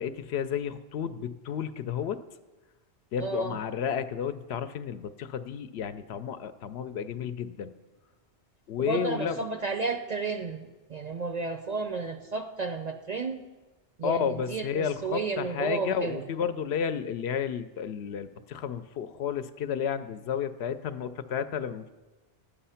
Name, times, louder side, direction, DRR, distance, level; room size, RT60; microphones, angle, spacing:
voice 1, 0.0-2.2 3.1-7.7 8.7-9.4 14.0-21.9, left 7 dB, 70° left, 11 dB, 0.8 m, -32 dB
voice 2, 3.2-3.6 8.8-13.4 14.0-16.3, right 4 dB, 50° right, 6 dB, 0.5 m, -32 dB
11.5 x 8.4 x 5.6 m, 1.2 s
omnidirectional pair, 1.2 m